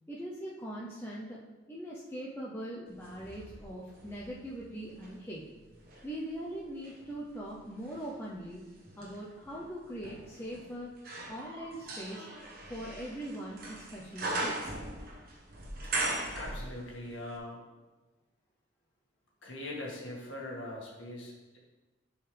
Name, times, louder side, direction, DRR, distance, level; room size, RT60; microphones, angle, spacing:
voice 1, 0.1-1.4 1.7-5.5 6.0-8.7 9.0-10.9 11.3-12.2 12.7-14.7, right 1 dB, 10° left, -6 dB, 0.7 m, -41 dB
sound 1, 3.0-5.2 5.7-17.1 17.3-17.4, right 2 dB, 50° right, 1.2 m, -40 dB
voice 2, 16.3-17.6 19.4-21.6, left 1 dB, 80° left, -3 dB, 2.0 m, -41 dB
11.0 x 4.7 x 3.4 m, 1.2 s
head